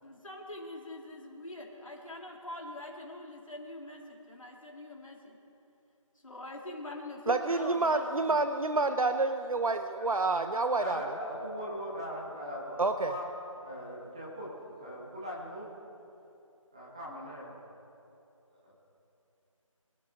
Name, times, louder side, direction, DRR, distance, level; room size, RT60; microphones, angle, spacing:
voice 1, 0.0-5.4 6.2-8.4 8.6-8.9, left 1 dB, 70° left, 0 dB, 2.4 m, -44 dB
voice 2, 7.3-11.0 12.8-13.1, right 3 dB, 90° right, 8 dB, 0.8 m, -28 dB
voice 3, 10.0-10.3 10.7-13.3 13.6-15.7 16.7-17.6 18.6-18.8, equal, 10° right, -6 dB, 1.2 m, -40 dB
23.5 x 11.5 x 3.7 m, 2.8 s
figure-of-eight pair, 175°, 17 cm